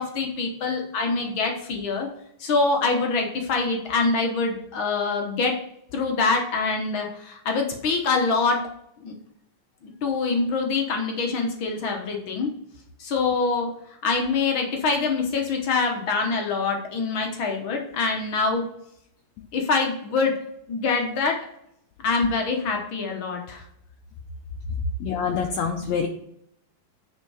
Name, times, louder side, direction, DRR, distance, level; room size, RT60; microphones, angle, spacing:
voice 1, 0.0-2.1 2.4-5.5 5.9-8.6 9.0-9.1 10.0-12.5 13.0-13.7 14.0-18.6 19.5-20.3 20.7-21.4 22.0-23.6, left 4 dB, 60° left, 2 dB, 1.3 m, -25 dB
voice 2, 25.0-26.1, left 6 dB, 75° left, 3 dB, 1.6 m, -26 dB
9.6 x 4.5 x 4.8 m, 0.73 s
omnidirectional pair, 3.7 m